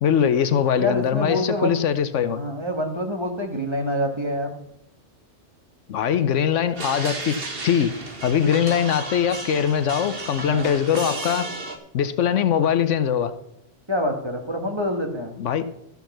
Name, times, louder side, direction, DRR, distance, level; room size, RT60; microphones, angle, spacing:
voice 1, 0.0-2.4 5.9-7.4 7.6-7.9 8.2-11.5 11.9-13.3 15.4-15.7, left 8 dB, 75° left, 12 dB, 1.1 m, -21 dB
voice 2, 0.7-1.8 2.4-4.5 10.4-10.7 13.9-15.4, left 1 dB, 20° right, 2 dB, 1.7 m, -26 dB
sound 1, 6.8-11.8, right 3 dB, 50° right, 1.6 m, -34 dB
13.0 x 5.8 x 7.2 m, 0.80 s
omnidirectional pair, 1.3 m